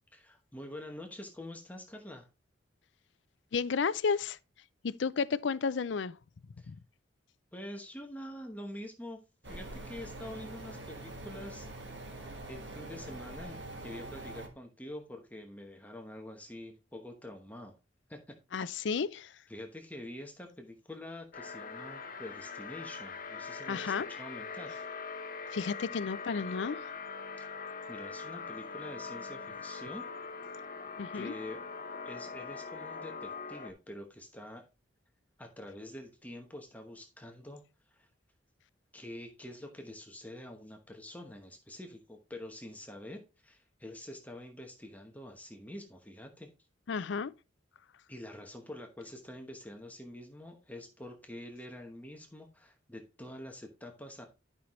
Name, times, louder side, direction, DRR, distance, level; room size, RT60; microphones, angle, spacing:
voice 1, 0.1-2.3 6.6-6.7 7.5-9.2 9.5-12.2 12.5-17.8 18.1-18.7 19.5-24.8 27.4-27.5 27.9-30.0 31.1-31.7 32.0-34.6 35.4-38.1 38.9-46.5 48.1-54.3, left 1 dB, 10° left, 1.0 m, -46 dB
voice 2, 3.5-4.4 4.8-6.1 6.7-6.8 18.5-19.3 23.7-24.1 25.5-26.8 31.0-31.3 46.9-47.3, left 5 dB, 65° left, 0.5 m, -32 dB
sound 1, 9.4-14.5, right 2 dB, 65° right, 1.7 m, -44 dB
sound 2, 21.3-33.7, left 5 dB, 50° left, 1.0 m, -42 dB
11.5 x 5.6 x 3.1 m
head